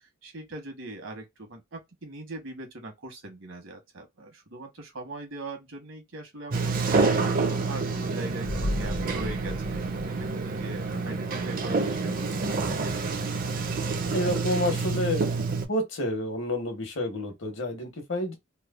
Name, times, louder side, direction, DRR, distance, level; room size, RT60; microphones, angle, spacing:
voice 1, 0.0-12.5, right 2 dB, 75° right, 1.1 m, -41 dB
Sliding door, 6.5-15.7, right 4 dB, 45° right, 0.5 m, -28 dB
sound 1, 8.4-11.1 11.4-11.5, left 1 dB, 50° left, 0.6 m, -35 dB
voice 2, 14.0-15.2 15.7-18.3, left 1 dB, 65° left, 1.1 m, -29 dB
3.1 x 2.0 x 2.3 m
head